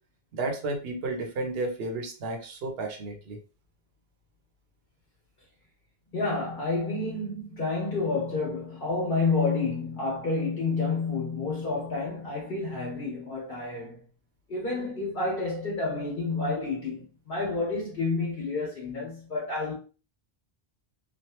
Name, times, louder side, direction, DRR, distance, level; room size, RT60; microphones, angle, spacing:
voice 1, 0.3-3.4, right 2 dB, 70° right, 1.0 m, -32 dB
voice 2, 6.1-14.0 14.5-19.7, left 3 dB, 55° left, 1.3 m, -29 dB
3.1 x 2.4 x 2.9 m
omnidirectional pair, 1.1 m